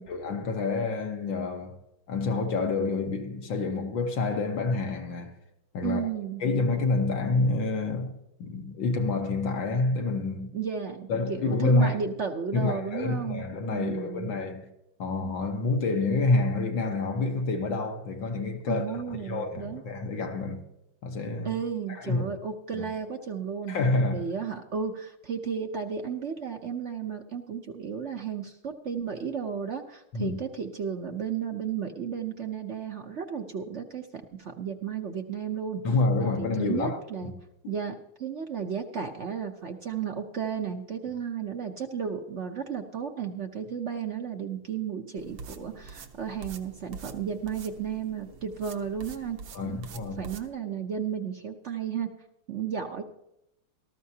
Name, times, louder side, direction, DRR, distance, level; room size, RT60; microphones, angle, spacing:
voice 1, 0.1-1.8 2.1-5.4 5.7-6.0 6.4-10.5 11.1-12.0 12.5-14.7 15.0-20.6 21.0-21.6 21.9-22.3 22.7-22.9 23.7-24.3 30.1-30.4 35.8-37.3 37.6-37.7 49.5-50.3, left 3 dB, 70° left, 1.9 m, -28 dB
voice 2, 5.8-6.4 10.5-13.4 13.7-14.3 18.7-19.8 21.4-35.8 36.2-37.3 37.7-49.4 49.6-49.7 50.2-52.1 52.5-53.0, right 7 dB, 60° right, 0.7 m, -33 dB
sound 1, 45.2-50.5, right 4 dB, 85° right, 2.0 m, -46 dB
18.5 x 14.0 x 2.8 m
omnidirectional pair, 2.3 m